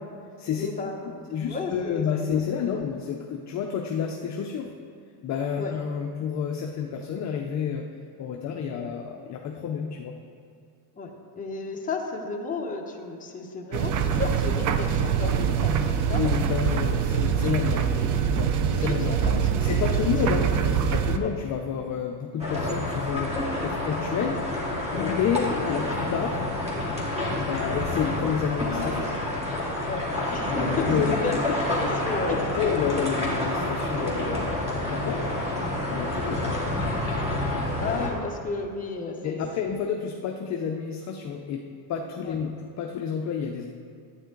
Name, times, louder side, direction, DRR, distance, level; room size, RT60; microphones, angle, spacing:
voice 1, 0.6-2.0 2.3-2.4 5.6-5.7 8.8-8.9 11.0-16.2 17.1-17.5 17.9-18.2 18.7-19.9 21.2-21.3 25.0-25.1 29.9-30.0 30.3-32.7 37.8-39.4 42.3-42.4, left 4 dB, 15° left, 0 dB, 1.0 m, -33 dB
voice 2, 1.3-4.7 5.2-7.9 8.2-10.2 16.1-18.0 18.3-19.2 19.6-24.4 24.9-26.4 27.4-29.1 30.5-31.4 32.6-35.2 35.9-36.5 39.2-41.6 41.9-43.7, left 7 dB, 35° left, 2 dB, 0.6 m, -29 dB
sound 1, 13.7-21.2, right 7 dB, 40° right, 0.5 m, -24 dB
sound 2, 22.4-38.1, left 1 dB, 10° right, 2.1 m, -28 dB
12.0 x 9.1 x 3.8 m, 2.3 s
cardioid pair, 150°, 49 cm